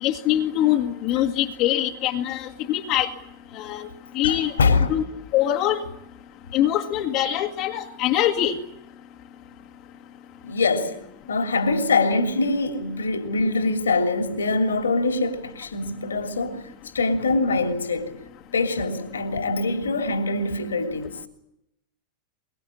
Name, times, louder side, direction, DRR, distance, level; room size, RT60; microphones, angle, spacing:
voice 1, 0.0-3.1 3.5-3.9 4.1-4.5 4.9-5.0 5.3-5.8 6.5-8.6, left 12 dB, 40° left, 1.8 m, -23 dB
voice 2, 4.2-4.9 10.4-11.0 11.3-18.2 18.5-21.2, left 3 dB, 70° left, 3.1 m, -24 dB
23.5 x 23.0 x 8.6 m
figure-of-eight pair, 90°, 0 cm